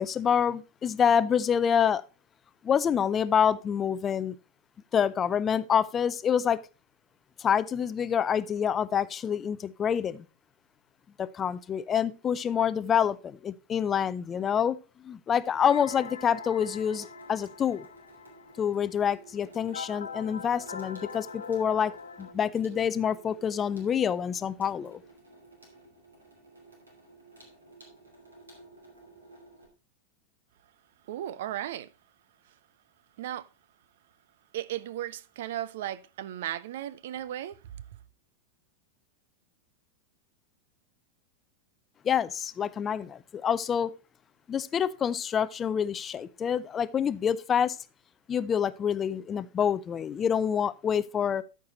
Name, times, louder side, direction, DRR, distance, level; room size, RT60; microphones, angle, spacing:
voice 1, 0.0-2.0 2.6-4.4 4.9-6.6 7.4-10.3 11.2-14.8 15.0-17.9 18.6-25.0 42.0-43.9 44.5-47.8 48.3-51.4, left 8 dB, 25° left, 0.4 m, -27 dB
Water tap faucet / Sink (filling or washing), 15.4-29.7, right 3 dB, 75° right, 2.6 m, -53 dB
sound 1, 15.7-22.3, left 6 dB, 70° left, 0.7 m, -43 dB
voice 2, 31.1-31.9 33.2-33.5 34.5-37.6, right 12 dB, 55° right, 0.4 m, -35 dB
13.5 x 4.6 x 4.0 m
figure-of-eight pair, 90°, 0 cm